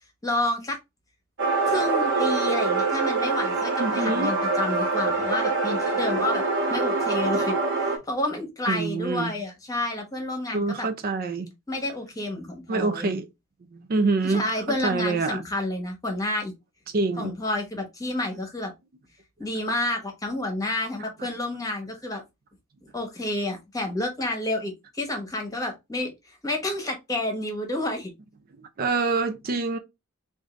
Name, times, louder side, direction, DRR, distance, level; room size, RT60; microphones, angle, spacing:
voice 1, 0.2-0.8 1.7-6.4 6.7-10.9 11.7-13.1 14.2-16.5 17.2-18.7 19.4-22.2 22.9-28.1, left 2 dB, 15° left, 1.1 m, -30 dB
sound 1, 1.4-8.0, right 3 dB, 60° right, 1.2 m, -24 dB
voice 2, 3.8-4.3 8.7-9.3 10.5-11.5 12.7-13.3 13.9-15.4 16.9-17.3 28.8-29.8, right 3 dB, 45° right, 0.4 m, -26 dB
3.5 x 2.6 x 3.8 m
head